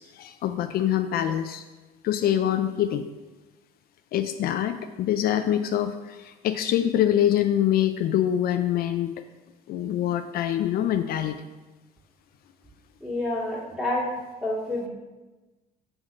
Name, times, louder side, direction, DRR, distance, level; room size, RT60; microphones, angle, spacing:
voice 1, 0.0-1.6 2.0-3.1 4.1-9.1 9.7-11.4, left 11 dB, 65° left, 8 dB, 0.4 m, -25 dB
voice 2, 13.0-14.1 14.4-14.9, left 1 dB, 5° right, -5 dB, 2.3 m, -28 dB
6.2 x 3.8 x 6.0 m, 1.2 s
cardioid pair, 110°, 17 cm